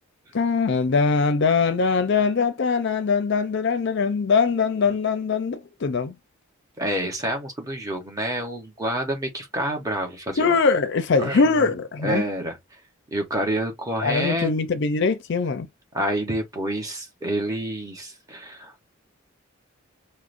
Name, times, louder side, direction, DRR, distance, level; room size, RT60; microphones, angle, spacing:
voice 1, 0.3-6.2 10.4-12.2 14.0-15.7, left 4 dB, 55° left, 0.4 m, -22 dB
voice 2, 6.8-10.6 11.2-11.7 12.0-12.6 13.1-14.6 15.9-18.9, right 1 dB, 15° right, 0.9 m, -28 dB
4.8 x 2.0 x 2.5 m
head